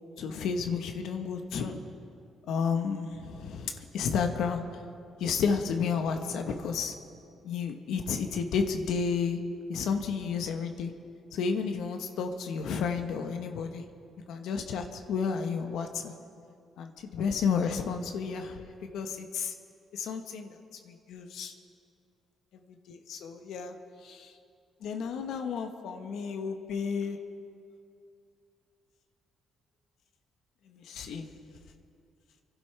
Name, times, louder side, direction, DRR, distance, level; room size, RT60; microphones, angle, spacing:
voice 1, 0.2-1.8 2.5-4.8 5.2-6.9 7.4-9.4 9.7-10.9 11.3-13.8 14.3-16.1 16.8-18.6 18.9-19.5 19.9-20.5 20.8-21.5 22.7-23.7 24.0-24.3 24.8-27.2 30.7-31.4, left 6 dB, 80° left, 5 dB, 1.1 m, -32 dB
28.0 x 11.5 x 3.3 m, 2.5 s
cardioid pair, 90°, 0 cm